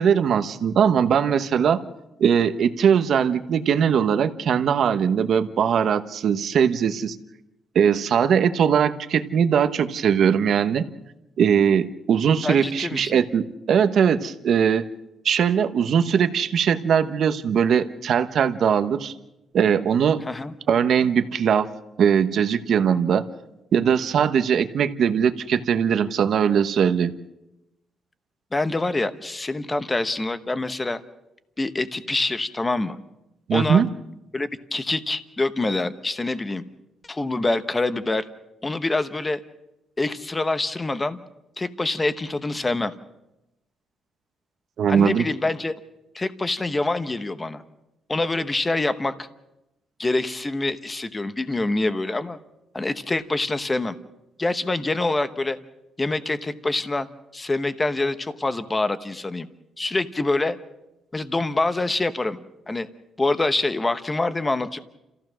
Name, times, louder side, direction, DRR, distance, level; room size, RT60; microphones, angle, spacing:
voice 1, 0.0-1.8 2.2-7.2 7.7-10.8 11.4-14.9 15.2-19.1 19.5-20.2 20.7-21.7 22.0-23.2 23.7-27.1 33.5-33.9 44.8-45.2, right 7 dB, 50° right, 9 dB, 1.0 m, -20 dB
voice 2, 12.4-13.2 20.3-20.5 28.5-31.0 31.6-33.0 33.5-33.8 34.3-36.6 37.1-38.2 38.6-39.4 40.0-41.2 41.6-42.9 44.9-45.7 46.1-47.6 48.1-49.3 50.0-52.4 52.7-54.0 54.4-55.6 56.0-57.1 57.3-59.5 59.8-60.6 61.1-62.4 62.7-62.9 63.2-64.8, left 2 dB, 15° left, 11 dB, 0.9 m, -25 dB
30.0 x 15.0 x 6.3 m, 0.93 s
cardioid pair, 170°, 0 cm